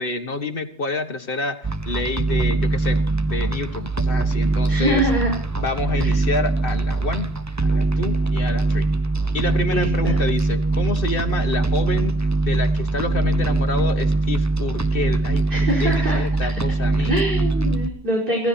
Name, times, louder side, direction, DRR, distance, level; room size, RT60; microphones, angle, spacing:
voice 1, 0.0-5.1 5.6-7.3 7.6-8.9 9.3-12.2 12.5-17.1, left 2 dB, 55° left, 8 dB, 1.7 m, -28 dB
sound 1, 1.6-17.9, right 3 dB, 15° right, 0.9 m, -22 dB
voice 2, 4.7-5.3 6.0-6.1 9.6-10.2 15.5-16.3 17.0-18.5, right 1 dB, 55° right, -2 dB, 5.1 m, -24 dB
26.5 x 15.5 x 2.8 m, 0.42 s
omnidirectional pair, 1.1 m